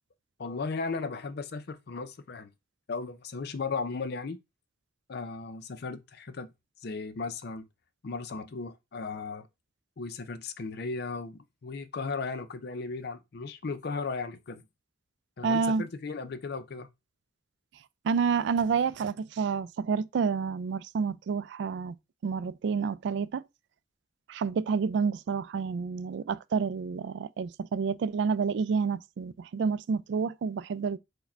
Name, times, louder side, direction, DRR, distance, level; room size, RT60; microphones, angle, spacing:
voice 1, 0.4-2.5 2.9-4.4 5.1-6.5 6.8-7.7 8.0-9.5 10.0-14.6 15.4-16.9, left 4 dB, 55° left, 0.5 m, -36 dB
voice 2, 15.4-15.8 18.0-22.0 22.2-23.4 24.3-31.0, right 5 dB, 65° right, 0.3 m, -29 dB
4.7 x 2.2 x 4.3 m
head